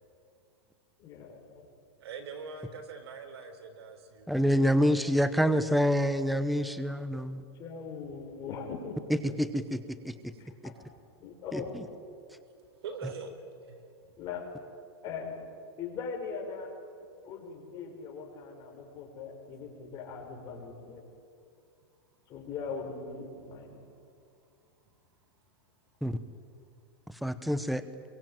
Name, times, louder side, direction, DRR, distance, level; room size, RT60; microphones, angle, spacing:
voice 1, 1.0-1.7 7.6-9.2 10.4-10.7 11.2-11.8 14.2-14.4 15.0-15.5 15.8-16.7 17.2-21.0 22.3-23.9, left 5 dB, 30° left, 1 dB, 5.3 m, -40 dB
voice 2, 2.0-4.5 12.8-13.3 13.7-13.8, right 5 dB, 75° right, 7 dB, 4.3 m, -42 dB
voice 3, 4.3-7.4 9.2-10.3 10.6-10.7 11.5-11.8 26.0-26.2 27.1-27.8, equal, ahead, 12 dB, 0.9 m, -27 dB
25.5 x 23.0 x 9.0 m, 2.4 s
supercardioid pair, 150°, 13 cm